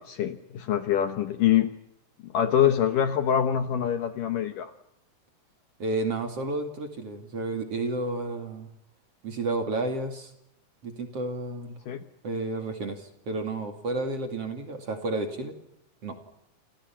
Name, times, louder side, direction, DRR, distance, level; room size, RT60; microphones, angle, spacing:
voice 1, 0.0-1.7 2.2-4.7 11.9-12.0, left 9 dB, 65° left, 8 dB, 2.3 m, -25 dB
voice 2, 5.8-8.7 9.2-10.3 10.8-11.8 12.2-15.5 16.0-16.2, right 2 dB, 40° right, 5 dB, 3.0 m, -31 dB
29.0 x 27.5 x 5.9 m, 0.81 s
omnidirectional pair, 4.8 m